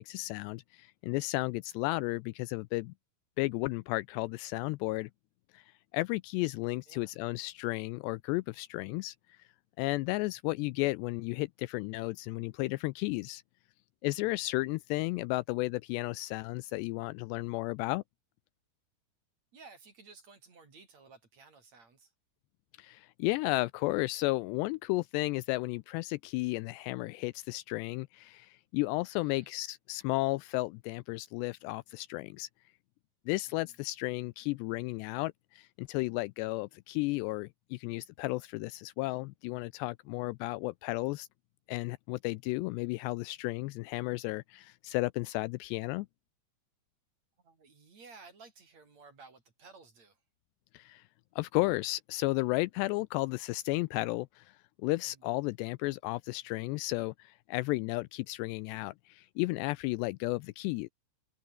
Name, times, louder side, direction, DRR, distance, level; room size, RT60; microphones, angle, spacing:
voice 1, 0.0-2.9 3.4-5.1 5.5-9.4 9.8-13.4 14.0-18.0 22.8-32.5 33.3-41.3 41.7-46.1 50.7-51.1 51.4-60.9, left 21 dB, 85° left, 2.6 m, -33 dB
voice 2, 19.5-22.1 29.2-29.5 33.5-33.8 40.1-40.3 47.4-50.2 55.1-55.3, right 4 dB, 40° right, 5.2 m, -56 dB
omnidirectional pair, 5.1 m